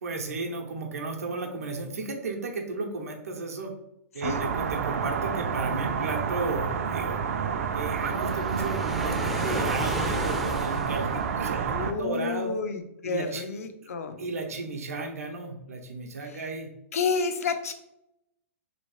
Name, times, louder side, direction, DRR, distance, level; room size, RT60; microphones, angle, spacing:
voice 1, 0.0-3.7 4.1-7.2 7.7-12.5 13.0-13.4 14.2-16.7, right 3 dB, 90° right, 2 dB, 0.8 m, -34 dB
sound 1, 4.2-11.9, right 6 dB, 75° right, 0.4 m, -29 dB
Waves surf, 7.9-11.4, equal, ahead, 0.4 m, -34 dB
voice 2, 11.7-14.2 16.3-16.4 16.9-17.7, left 5 dB, 85° left, 7 dB, 0.6 m, -30 dB
3.0 x 3.0 x 3.1 m, 0.81 s
hypercardioid pair, 145°, 8 cm